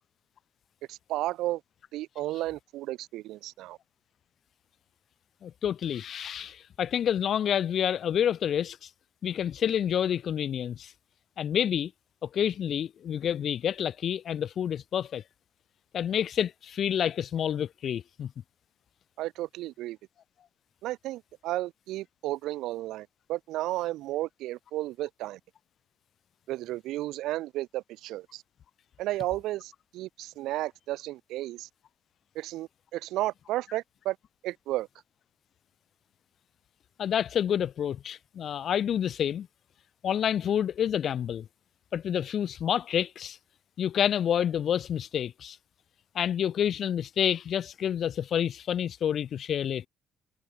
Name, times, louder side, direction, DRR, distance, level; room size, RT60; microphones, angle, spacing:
voice 1, 0.9-1.6 1.9-3.8 19.2-20.0 20.8-25.4 26.5-28.4 29.0-31.7 32.3-34.2 34.4-34.9, right 16 dB, 85° right, 0.7 m, -33 dB
voice 2, 5.4-8.9 9.2-10.9 11.4-11.9 12.2-15.2 15.9-18.3 37.0-39.5 40.0-41.5 41.9-43.4 43.8-45.6 46.1-49.9, left 9 dB, 45° left, 1.0 m, -28 dB
cardioid pair, 160°, 0 cm